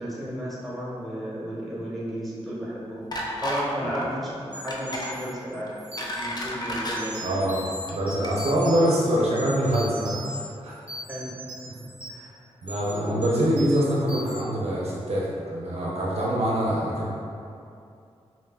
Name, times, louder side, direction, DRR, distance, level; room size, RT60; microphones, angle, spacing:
voice 1, 0.0-5.7 6.1-7.1 11.1-11.8 12.1-12.3 12.9-13.6, equal, ahead, -7 dB, 1.4 m, -33 dB
sound 1, 3.1-3.7 3.9-4.1 4.7-5.1 5.7-7.0 7.7-7.9 8.2-8.3, equal, 35° left, 0.6 m, -31 dB
sound 2, 4.5-6.3 6.8-9.0 9.4-10.4 10.7-12.2 12.6-12.9 13.2-13.8 14.1-14.3, equal, 15° right, 1.2 m, -39 dB
voice 2, 7.2-10.8 12.6-17.2, equal, 65° right, -4 dB, 0.6 m, -25 dB
5.1 x 2.6 x 2.3 m, 2.5 s
cardioid pair, 45°, 12 cm